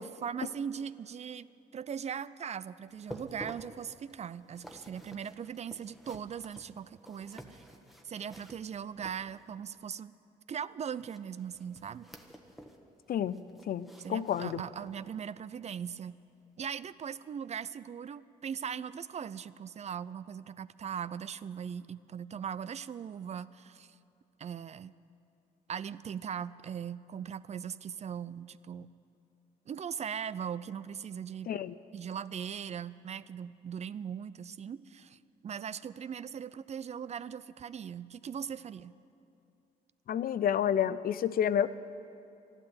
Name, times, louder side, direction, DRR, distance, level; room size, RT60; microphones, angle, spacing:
voice 1, 0.0-1.5 1.7-7.6 8.0-10.1 10.5-12.1 14.0-16.2 16.6-23.9 24.4-24.9 25.7-28.9 29.7-31.5 31.9-38.9, right 8 dB, 40° right, 17 dB, 0.4 m, -39 dB
sound 1, 2.9-9.6 11.0-12.8 13.1-15.1 15.5-15.7 16.2-16.3, equal, ahead, 1.3 m, -51 dB
voice 2, 13.1-14.6 31.5-31.8 40.1-41.7, left 9 dB, 60° left, 15 dB, 0.5 m, -30 dB
13.0 x 12.0 x 8.0 m, 2.6 s
cardioid pair, 75°, 17 cm